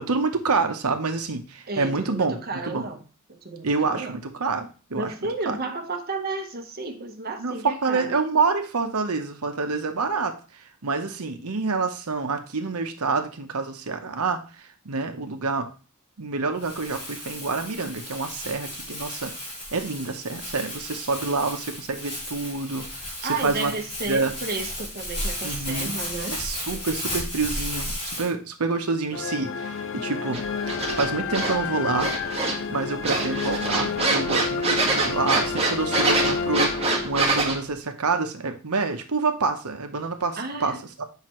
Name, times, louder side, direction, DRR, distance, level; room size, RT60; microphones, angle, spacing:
voice 1, 0.0-2.8 3.6-5.1 5.4-5.6 7.4-14.4 14.8-15.7 16.2-19.3 19.7-23.1 23.4-23.7 24.1-24.3 25.4-25.9 26.3-30.4 30.7-32.1 32.7-36.7 37.0-41.0, right 4 dB, 90° right, 6 dB, 1.0 m, -27 dB
voice 2, 1.7-3.0 3.3-4.2 5.0-8.2 23.2-26.4 40.4-40.8, right 3 dB, 45° right, 4 dB, 1.1 m, -32 dB
Crumpling crinkling, 16.6-28.3, left 1 dB, 30° left, 3.7 m, -34 dB
sound 1, 29.1-37.5, left 5 dB, 60° left, 0.6 m, -30 dB
sound 2, 30.3-31.6 32.0-32.7 33.0-37.6, right 3 dB, 30° right, 1.6 m, -25 dB
7.6 x 5.7 x 3.1 m, 0.36 s
head